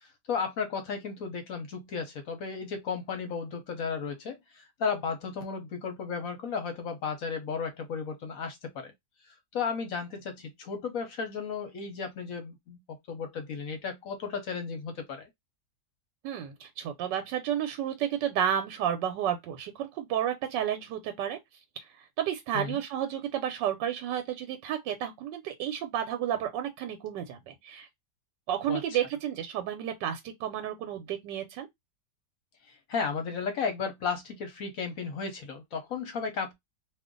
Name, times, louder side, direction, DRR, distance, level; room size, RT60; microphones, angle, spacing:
voice 1, 0.0-8.9 9.5-12.8 13.1-15.3 22.5-22.8 28.7-28.8 32.9-36.5, left 5 dB, 60° left, 1.0 m, -34 dB
voice 2, 16.2-21.4 21.8-27.9 28.5-31.7, right 10 dB, 85° right, 1.2 m, -31 dB
2.6 x 2.5 x 3.6 m
omnidirectional pair, 1.9 m